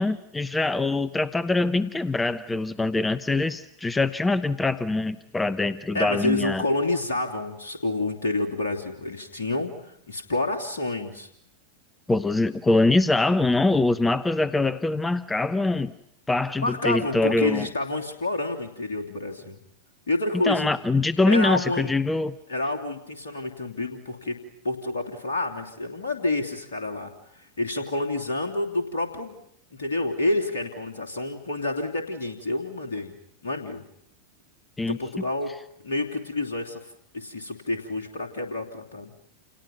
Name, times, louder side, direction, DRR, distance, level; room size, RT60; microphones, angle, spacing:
voice 1, 0.0-6.6 12.1-15.9 16.3-17.7 20.3-22.3 34.8-35.0, left 2 dB, 10° left, 15 dB, 0.9 m, -23 dB
voice 2, 5.9-11.3 16.6-19.6 20.1-20.7 21.2-21.9 22.5-24.4 24.6-29.4 29.7-33.1 33.4-33.8 34.9-35.5 35.8-36.9 37.1-39.1, left 2 dB, 65° left, 4 dB, 3.2 m, -28 dB
30.0 x 29.0 x 5.6 m, 0.74 s
figure-of-eight pair, 90°, 0 cm